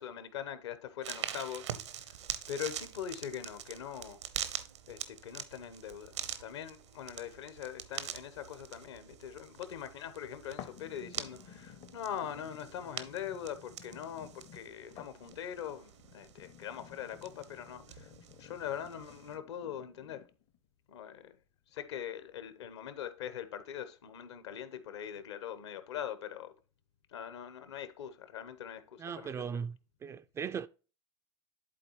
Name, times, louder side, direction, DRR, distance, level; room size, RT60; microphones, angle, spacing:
voice 1, 0.0-1.7 2.5-4.2 4.9-18.1 18.4-20.2 20.9-21.3 21.7-26.5 27.1-29.6, left 9 dB, 70° left, 1.0 m, -42 dB
sound 1, 1.0-19.4, right 10 dB, 75° right, 0.8 m, -45 dB
sound 2, 10.6-20.6 21.1-21.2, left 10 dB, 40° left, 0.7 m, -54 dB
voice 2, 29.0-30.7, right 7 dB, 20° right, 0.3 m, -38 dB
11.0 x 4.1 x 3.0 m
hypercardioid pair, 90°, 15 cm